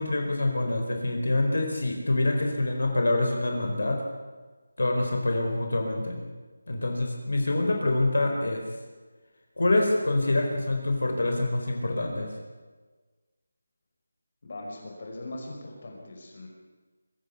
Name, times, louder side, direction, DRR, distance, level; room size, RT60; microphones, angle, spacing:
voice 1, 0.0-4.0 4.8-6.2 6.7-8.6 9.6-12.3, left 2 dB, 80° left, 3 dB, 4.6 m, -26 dB
voice 2, 14.4-16.5, left 2 dB, 40° left, 0 dB, 5.5 m, -40 dB
24.5 x 14.0 x 8.4 m, 1.3 s
figure-of-eight pair, 175°, 0 cm